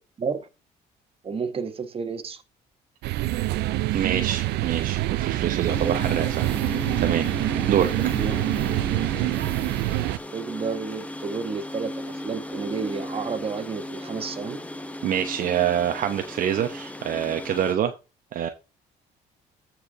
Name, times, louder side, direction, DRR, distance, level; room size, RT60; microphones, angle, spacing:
voice 1, 0.2-0.5 1.2-2.4 7.7-8.4 10.3-14.6, right 5 dB, 35° right, 1.5 m, -31 dB
sound 1, 3.0-10.2, right 16 dB, 80° right, 0.5 m, -25 dB
voice 2, 3.9-6.5 6.8-7.9 15.0-17.9 18.3-18.5, right 9 dB, 55° right, 0.9 m, -26 dB
sound 2, 5.7-17.8, left 1 dB, 10° left, 0.9 m, -36 dB
14.0 x 4.7 x 3.7 m
cardioid pair, 110°, 17 cm